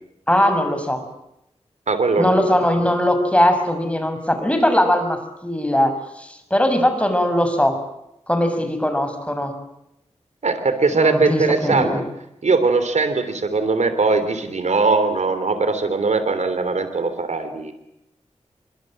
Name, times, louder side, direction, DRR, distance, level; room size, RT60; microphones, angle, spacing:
voice 1, 0.3-1.0 2.2-7.8 8.3-9.5 10.9-12.0, left 1 dB, 10° left, 7 dB, 6.4 m, -20 dB
voice 2, 1.9-2.5 10.4-11.9 12.4-17.7, right 3 dB, 80° right, 10 dB, 3.4 m, -20 dB
25.5 x 24.5 x 7.7 m, 0.83 s
wide cardioid pair, 65°, 12 cm